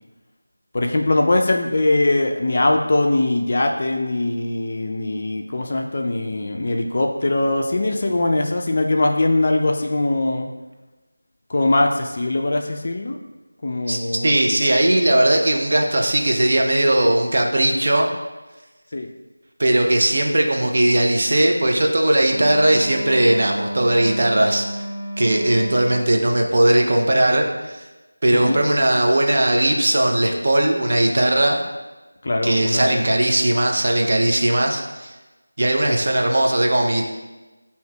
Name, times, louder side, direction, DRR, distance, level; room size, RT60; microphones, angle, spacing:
voice 1, 0.7-10.5 11.5-13.2 13.6-14.4 18.9-19.1 28.3-28.6 32.2-33.1, left 2 dB, 40° left, 2 dB, 0.3 m, -21 dB
voice 2, 13.9-18.1 19.6-24.7 25.2-27.8 28.2-31.6 32.4-35.1 35.6-37.0, right 1 dB, 45° right, 1 dB, 0.5 m, -18 dB
Wind instrument woodwind instrument, 22.2-26.1, equal, 75° right, 0.9 m, -32 dB
6.3 x 2.7 x 2.2 m, 1.2 s
figure-of-eight pair, 175°, 0 cm